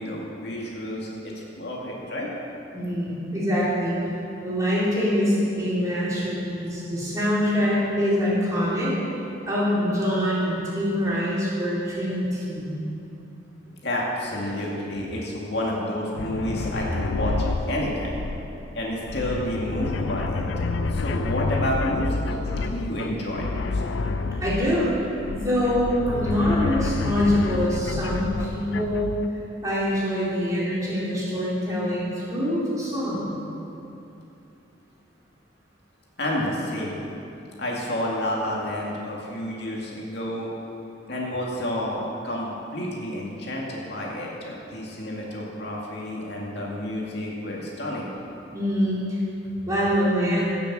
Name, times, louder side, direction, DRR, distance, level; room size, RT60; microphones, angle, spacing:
voice 1, 0.0-2.3 13.8-18.2 18.7-23.8 36.2-37.0 37.6-40.5 41.1-48.2, left 1 dB, 60° left, -3 dB, 2.2 m, -30 dB
voice 2, 2.7-4.0 4.4-8.9 9.5-12.8 24.4-24.9 25.3-29.1 29.6-33.3 48.5-49.2 49.7-50.6, equal, 20° right, -9 dB, 3.9 m, -24 dB
sound 1, 16.2-29.3, left 3 dB, 80° left, 0.5 m, -29 dB
17.0 x 6.9 x 7.6 m, 2.8 s
head